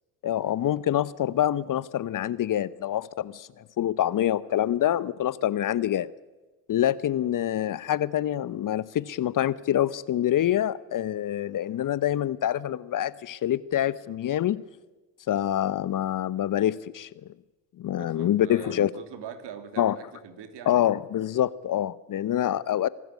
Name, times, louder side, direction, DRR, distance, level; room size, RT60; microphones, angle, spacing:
voice 1, 0.2-6.1 6.7-14.6 15.3-17.1 17.8-18.9 19.8-20.0 20.7-22.9, left 11 dB, 40° left, 19 dB, 0.8 m, -26 dB
voice 2, 18.0-20.9, right 7 dB, 55° right, 9 dB, 3.0 m, -42 dB
24.0 x 12.5 x 9.5 m, 1.2 s
hypercardioid pair, 65°, 49 cm